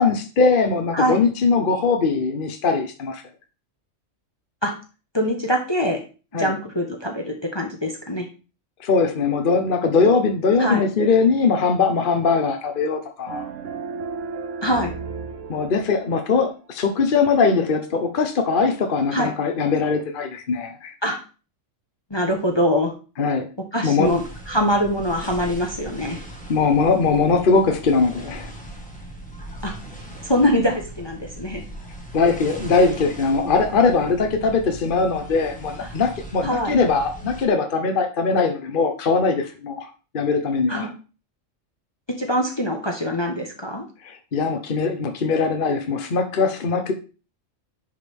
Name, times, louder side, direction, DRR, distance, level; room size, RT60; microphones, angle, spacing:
voice 1, 0.0-3.2 6.3-6.5 8.8-13.5 15.5-20.9 23.2-23.5 23.8-24.1 26.5-28.5 32.1-40.9 44.0-46.9, left 4 dB, 45° left, 5 dB, 1.0 m, -21 dB
voice 2, 5.1-6.0 6.4-8.2 10.6-10.8 14.6-14.9 19.1-19.3 21.0-21.2 22.1-22.9 23.7-26.2 29.6-29.7 30.2-31.6 35.8-35.9 36.4-36.7 40.7-40.9 42.2-43.8, equal, 20° left, 2 dB, 1.2 m, -23 dB
sound 1, 13.3-16.5, right 5 dB, 75° right, 1.2 m, -34 dB
sound 2, 24.0-37.5, right 1 dB, 5° left, 1.5 m, -39 dB
10.5 x 5.1 x 3.5 m, 0.34 s
omnidirectional pair, 1.3 m